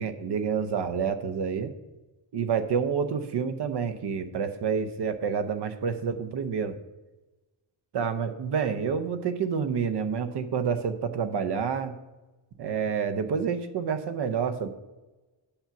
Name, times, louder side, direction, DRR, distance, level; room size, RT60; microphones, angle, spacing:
voice 1, 0.0-1.7 2.3-6.8 7.9-11.9 12.6-14.7, right 6 dB, 60° right, 10 dB, 0.8 m, -28 dB
8.7 x 5.8 x 5.9 m, 1.1 s
wide cardioid pair, 155°, 47 cm